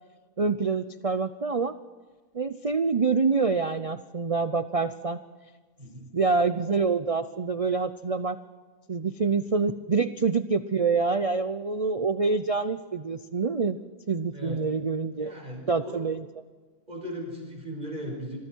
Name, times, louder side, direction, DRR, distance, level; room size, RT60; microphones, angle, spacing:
voice 1, 0.4-1.7 2.3-5.2 6.1-8.4 8.9-13.8 14.1-15.3 15.7-16.3, right 4 dB, 50° right, 11 dB, 0.4 m, -26 dB
voice 2, 5.8-6.1 9.3-9.4 14.3-14.6 15.1-16.1 16.9-18.4, equal, 30° right, 1 dB, 5.6 m, -38 dB
28.0 x 22.5 x 4.6 m, 1.4 s
omnidirectional pair, 1.5 m